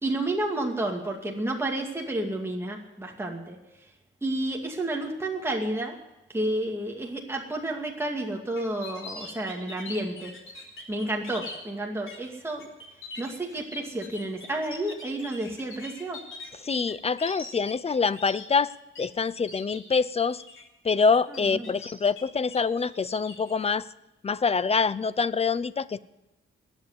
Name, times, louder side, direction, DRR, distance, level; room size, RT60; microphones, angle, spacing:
voice 1, 0.0-3.6 4.2-6.0 6.3-10.3 10.9-12.7 13.2-16.2 21.4-21.7, right 1 dB, 10° right, 0 dB, 2.3 m, -31 dB
sound 1, 8.6-11.6 12.1-12.3 12.6-19.0 19.3-19.8 20.2-20.6 21.0-22.2 22.5-23.5, left 3 dB, 70° left, 3.8 m, -42 dB
voice 2, 16.6-18.7 19.0-20.4 20.8-23.9 24.2-26.0, left 5 dB, 30° left, 17 dB, 0.6 m, -25 dB
21.0 x 8.2 x 8.1 m, 0.97 s
wide cardioid pair, 120°, 21 cm